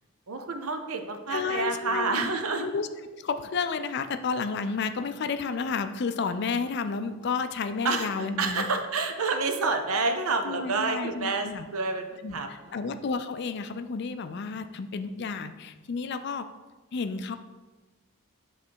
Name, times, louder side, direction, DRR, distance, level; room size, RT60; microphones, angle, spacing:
voice 1, 0.3-2.7 7.8-8.1 8.4-12.8, right 3 dB, 85° right, 6 dB, 0.7 m, -29 dB
voice 2, 1.3-2.3 2.6-8.7 10.4-11.7 12.2-16.5 16.9-17.4, left 5 dB, 50° left, 9 dB, 0.4 m, -31 dB
8.3 x 3.2 x 4.6 m, 1.3 s
head